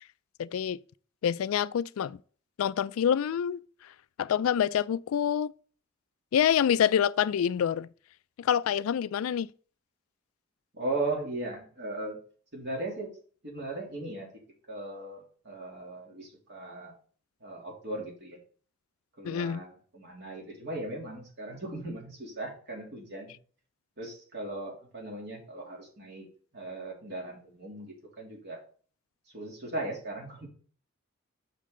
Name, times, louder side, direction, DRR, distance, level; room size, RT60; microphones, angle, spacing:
voice 1, 0.4-0.8 1.2-2.2 2.6-3.6 4.2-5.5 6.3-7.9 8.4-9.5 19.2-19.6, left 9 dB, 85° left, 0.3 m, -26 dB
voice 2, 10.7-12.2 12.5-13.1 13.4-14.3 14.7-16.9 17.4-18.4 19.2-23.3 24.0-26.3 26.5-28.6 29.3-30.5, right 2 dB, 55° right, 2.9 m, -37 dB
8.4 x 6.2 x 3.8 m
head